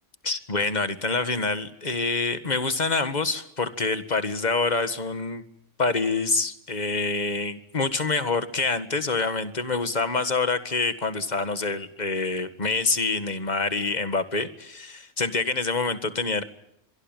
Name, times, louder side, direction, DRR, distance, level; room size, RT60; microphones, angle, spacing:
voice 1, 0.2-5.4 5.8-16.4, left 3 dB, 35° left, 11 dB, 1.9 m, -26 dB
25.0 x 22.5 x 9.2 m, 0.76 s
omnidirectional pair, 1.3 m